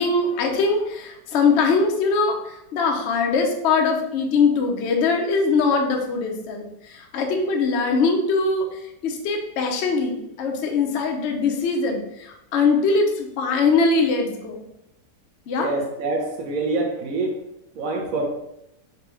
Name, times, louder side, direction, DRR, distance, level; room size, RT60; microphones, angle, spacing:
voice 1, 0.0-14.6 15.5-15.7, left 4 dB, 65° left, 2 dB, 0.7 m, -22 dB
voice 2, 15.6-17.4 17.8-18.3, right 3 dB, 65° right, 2 dB, 0.8 m, -25 dB
4.0 x 2.3 x 4.2 m, 0.84 s
omnidirectional pair, 1.9 m